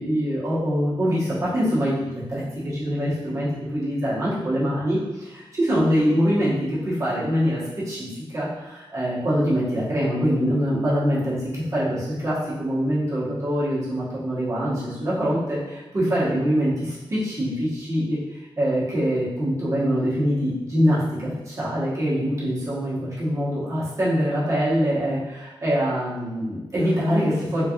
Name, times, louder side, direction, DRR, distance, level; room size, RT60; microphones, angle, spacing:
voice 1, 0.0-3.5 3.7-18.2 18.6-27.6, equal, 35° right, -9 dB, 1.2 m, -24 dB
3.9 x 3.3 x 2.4 m, 1.1 s
wide cardioid pair, 165°, 10 cm